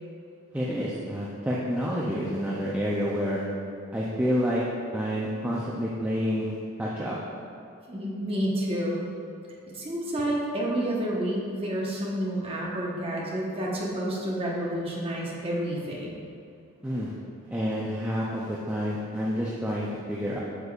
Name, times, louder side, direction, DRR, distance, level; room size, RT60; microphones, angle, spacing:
voice 1, 0.5-3.4 3.9-4.6 4.9-7.2 16.8-17.1 17.5-20.4, equal, 5° right, -6 dB, 0.4 m, -29 dB
voice 2, 7.9-9.1 9.7-16.2, right 1 dB, 25° right, -4 dB, 1.0 m, -29 dB
8.0 x 6.7 x 2.4 m, 2.5 s
head